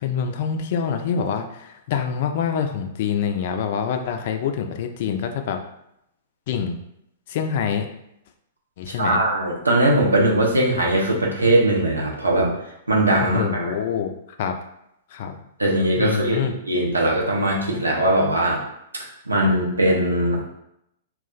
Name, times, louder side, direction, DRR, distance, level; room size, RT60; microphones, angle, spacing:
voice 1, 0.0-5.6 6.5-6.8 7.3-7.9 8.8-9.2 13.2-14.1 14.4-14.6 15.1-15.4 16.0-16.5, left 7 dB, 55° left, 6 dB, 0.4 m, -25 dB
voice 2, 8.9-12.5 12.9-13.8 15.6-18.6 19.3-20.4, right 1 dB, 90° right, -1 dB, 0.7 m, -20 dB
2.3 x 2.1 x 3.8 m, 0.79 s
figure-of-eight pair, 110°, 0 cm